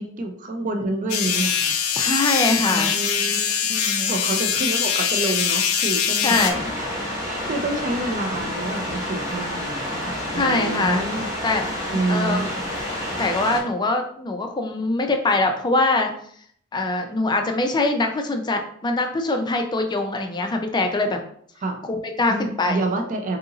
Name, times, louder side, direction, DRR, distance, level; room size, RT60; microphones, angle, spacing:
voice 1, 0.0-1.7 2.7-3.6 4.1-6.4 6.8-6.9 7.2-11.3 11.9-12.5 21.6-21.8 22.3-23.4, right 2 dB, 40° right, 4 dB, 0.4 m, -28 dB
sound 1, 1.1-6.5, left 7 dB, 85° left, 0.5 m, -23 dB
voice 2, 1.9-2.9 3.7-4.1 6.2-6.7 10.4-11.1 11.4-11.7 12.1-12.4 13.2-16.1 16.7-21.2 21.9-22.8, left 2 dB, 20° left, 4 dB, 0.4 m, -23 dB
sound 2, 6.3-13.6, left 1 dB, 15° right, 1.0 m, -29 dB
2.8 x 2.5 x 3.8 m, 0.63 s
head